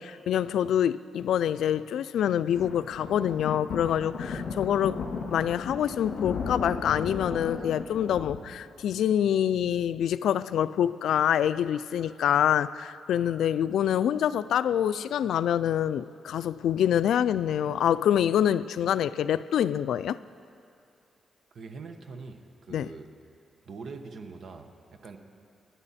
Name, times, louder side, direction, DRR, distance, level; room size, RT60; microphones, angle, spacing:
voice 1, 0.0-5.0 5.3-20.2 22.7-22.9, left 10 dB, 90° left, 0.3 m, -26 dB
sound 1, 2.5-8.4, left 4 dB, 70° left, 2.0 m, -35 dB
voice 2, 21.5-23.1 23.6-25.2, right 4 dB, 50° right, 1.0 m, -43 dB
24.0 x 11.0 x 4.2 m
wide cardioid pair, 175°, 0 cm